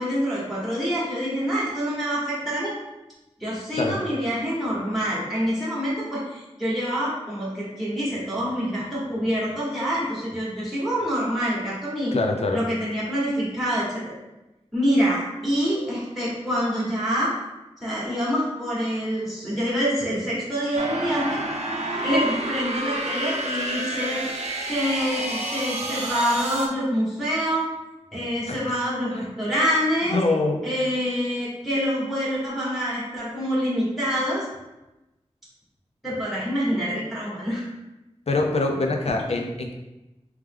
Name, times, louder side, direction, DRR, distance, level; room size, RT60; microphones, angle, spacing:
voice 1, 0.0-2.7 3.4-12.2 12.5-14.1 14.7-17.3 17.8-21.4 22.0-24.2 24.7-27.7 28.1-30.2 30.6-34.5 36.0-37.7 39.3-39.4, equal, ahead, -9 dB, 1.4 m, -26 dB
voice 2, 12.1-12.6 28.5-28.8 30.1-30.6 38.3-39.7, left 3 dB, 65° left, 2 dB, 0.6 m, -24 dB
sound 1, 20.8-26.7, right 1 dB, 75° right, 0.6 m, -29 dB
3.3 x 3.1 x 3.5 m, 0.99 s
wide cardioid pair, 65°, 11 cm